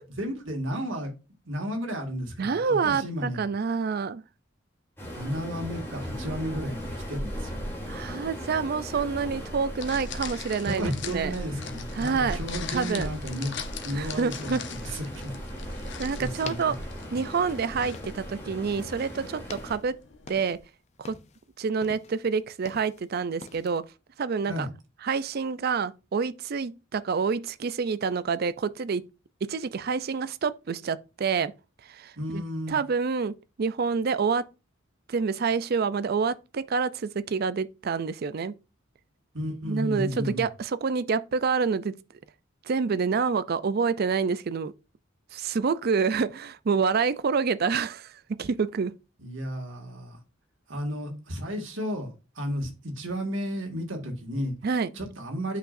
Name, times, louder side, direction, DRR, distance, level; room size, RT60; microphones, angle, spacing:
voice 1, 0.2-1.1 1.5-3.4 5.1-7.6 10.6-13.6 13.8-15.3 16.1-16.7 24.5-24.7 32.2-32.8 39.3-40.5 49.2-50.2 50.7-52.1 52.4-54.5 54.9-55.6, equal, 70° right, 2.0 m, -33 dB
voice 2, 2.4-4.2 7.9-11.3 12.0-12.4 12.7-13.1 13.9-14.6 16.0-16.8 17.1-19.9 20.3-20.6 21.0-21.2 21.6-23.8 24.2-24.7 25.0-29.0 29.4-31.5 31.9-32.4 32.7-34.4 35.1-38.5 39.7-41.9 42.7-44.7 45.3-48.1 48.4-48.9 54.6-54.9, right 5 dB, 50° right, 0.4 m, -27 dB
Waves surf, 5.0-19.8, equal, 10° left, 3.0 m, -38 dB
sound 1, 9.2-20.6, left 7 dB, 60° left, 0.9 m, -43 dB
sound 2, 16.5-18.4 18.7-19.1 19.4-20.7 20.9-21.4 21.8-23.1 23.4-23.8, left 4 dB, 35° left, 0.6 m, -45 dB
8.2 x 5.9 x 2.6 m
head